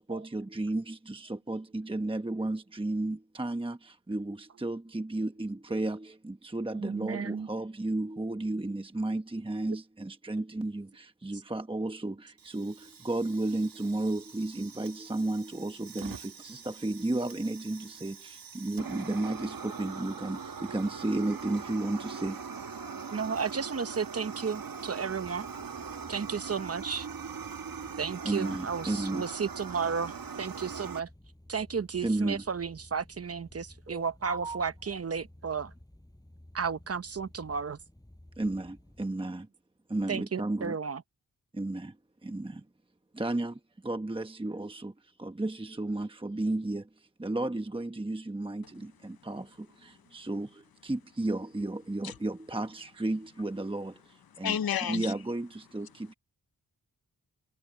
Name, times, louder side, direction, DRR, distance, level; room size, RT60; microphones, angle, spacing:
voice 1, 0.0-22.4 28.2-29.3 32.0-32.4 33.9-34.6 38.4-39.5 39.9-40.8 41.5-42.0 42.2-42.7 43.1-54.6 54.9-56.1, right 2 dB, 15° right, 1.0 m, -33 dB
voice 2, 6.7-7.5 23.1-25.5 26.1-27.1 28.0-31.1 31.5-35.7 36.5-37.8 40.1-41.0, right 6 dB, 40° right, 0.8 m, -33 dB
Fire, 12.4-31.0, right 6 dB, 70° right, 1.4 m, -42 dB
sound 1, 25.1-39.0, left 1 dB, 10° left, 6.1 m, -55 dB
voice 3, 49.9-50.3 52.0-52.2 54.3-55.1, left 9 dB, 80° left, 0.8 m, -33 dB
wide cardioid pair, 85°, 36 cm